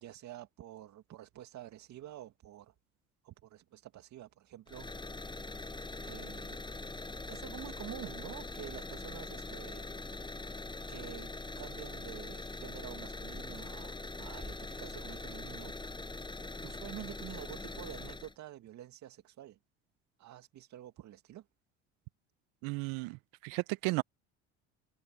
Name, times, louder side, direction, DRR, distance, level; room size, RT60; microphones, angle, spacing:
voice 1, 0.0-2.7 3.2-4.9 6.0-6.6 7.3-9.9 10.2-10.4 10.9-11.3 11.6-15.7 16.6-19.6 20.2-21.5, right 12 dB, 55° right, 2.3 m, -48 dB
sound 1, 4.7-18.3, left 2 dB, 15° left, 5.9 m, -43 dB
voice 2, 22.6-24.0, right 25 dB, 70° right, 0.9 m, -34 dB
hypercardioid pair, 75°, 34 cm